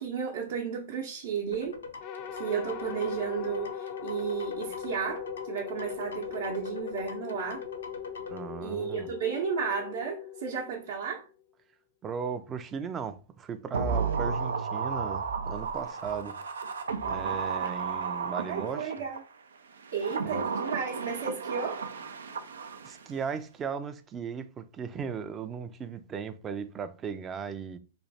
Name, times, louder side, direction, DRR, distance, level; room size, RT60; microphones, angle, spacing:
voice 1, 0.0-1.8 2.4-7.7 8.6-11.2 18.5-19.2 19.9-21.8, right 7 dB, 65° right, 0.8 m, -33 dB
sound 1, 1.5-8.4, left 4 dB, 90° left, 0.7 m, -43 dB
sound 2, 2.0-11.3, left 8 dB, 40° left, 0.4 m, -40 dB
voice 2, 8.3-9.1 12.0-16.4 17.0-18.9 20.2-20.5 22.8-27.8, right 6 dB, 20° right, 0.4 m, -37 dB
sound 3, 13.7-19.2 19.8-23.1 23.3-23.4, right 5 dB, 85° right, 0.5 m, -33 dB
3.2 x 2.3 x 4.1 m
hypercardioid pair, 125°, 0 cm